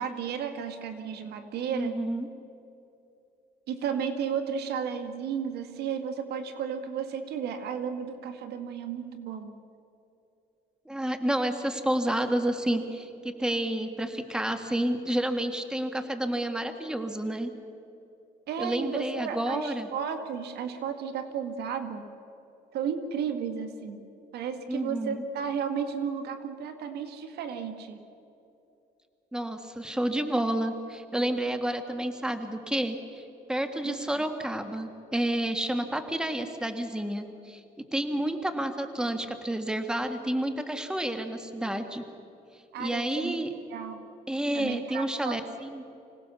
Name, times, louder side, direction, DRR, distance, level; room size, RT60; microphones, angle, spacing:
voice 1, 0.0-2.0 3.7-9.5 18.5-22.0 22.7-24.0 24.3-28.0 33.8-34.2 42.7-43.4 43.7-44.0 44.5-45.4, right 7 dB, 75° right, 7 dB, 2.0 m, -33 dB
voice 2, 1.7-2.3 10.8-17.5 18.6-19.9 24.7-25.2 29.3-42.0 42.8-43.5 44.3-45.8, right 1 dB, 5° right, 7 dB, 1.7 m, -30 dB
25.5 x 18.0 x 7.0 m, 2.8 s
cardioid pair, 110°, 17 cm